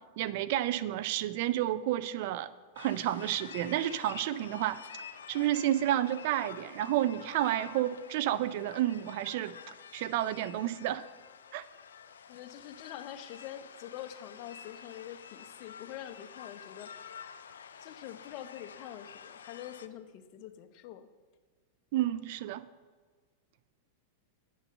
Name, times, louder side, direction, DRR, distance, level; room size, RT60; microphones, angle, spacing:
voice 1, 0.2-2.5 2.8-4.8 5.3-11.0 11.5-11.6 21.9-22.6, right 13 dB, 60° right, 15 dB, 0.5 m, -30 dB
sound 1, 2.8-19.9, left 7 dB, 85° left, 0.5 m, -49 dB
voice 2, 12.3-16.9 17.8-21.1, left 11 dB, 50° left, 9 dB, 0.8 m, -45 dB
9.4 x 6.2 x 6.4 m, 1.5 s
hypercardioid pair, 105°, 0 cm